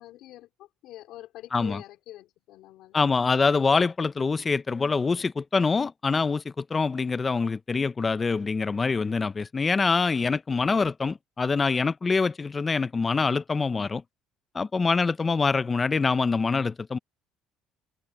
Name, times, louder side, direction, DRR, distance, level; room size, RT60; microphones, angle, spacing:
voice 1, 0.0-3.0, left 15 dB, 70° left, 4.0 m, -45 dB
voice 2, 2.9-14.0 14.5-17.0, left 4 dB, 20° left, 0.6 m, -25 dB
cardioid pair, 125°, 0 cm